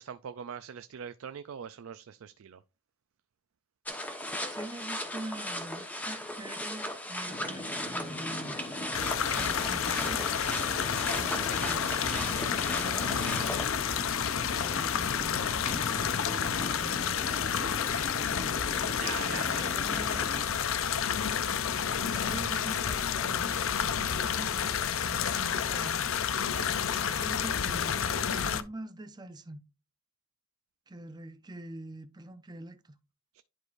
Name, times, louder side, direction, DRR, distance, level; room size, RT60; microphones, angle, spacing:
voice 1, 0.0-2.6 19.0-21.1 33.3-33.4, right 8 dB, 70° right, 0.4 m, -43 dB
sound 1, 3.9-13.7, left 1 dB, 5° left, 1.0 m, -37 dB
voice 2, 4.5-8.6 9.3-10.2 11.2-11.9 12.2-13.6 14.6-17.7 19.2-20.3 22.1-26.1 27.1-28.0 28.2-29.6 30.9-32.8, right 1 dB, 20° right, 0.6 m, -44 dB
sound 2, 7.3-20.4, left 1 dB, 30° left, 0.7 m, -41 dB
sound 3, 8.9-28.6, left 8 dB, 65° left, 0.5 m, -30 dB
10.5 x 4.8 x 2.5 m
head